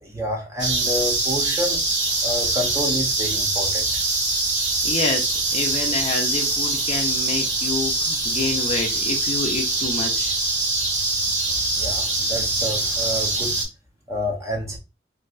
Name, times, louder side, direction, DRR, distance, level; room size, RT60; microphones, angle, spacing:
voice 1, 0.0-1.8 2.2-4.0 11.8-13.5 14.1-14.8, equal, 15° right, 0.7 m, -28 dB
sound 1, 0.6-13.7, right 2 dB, 80° right, 1.5 m, -23 dB
voice 2, 4.8-5.3 5.5-10.3, left 3 dB, 35° left, 0.5 m, -28 dB
3.1 x 2.5 x 2.4 m
head